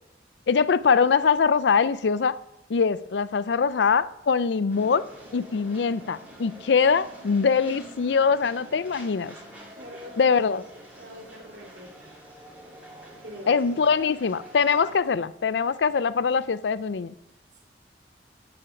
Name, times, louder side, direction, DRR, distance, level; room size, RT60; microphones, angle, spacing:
voice 1, 0.5-2.3 2.7-5.0 5.3-9.3 10.2-10.6 13.5-17.1, left 5 dB, 80° left, 16 dB, 0.5 m, -23 dB
sound 1, 4.7-15.0, right 1 dB, 10° right, 2.9 m, -46 dB
voice 2, 9.7-10.6 11.0-12.2 13.2-13.6 17.5-17.6, equal, 75° right, -1 dB, 2.9 m, -45 dB
10.0 x 8.6 x 4.8 m, 0.92 s
head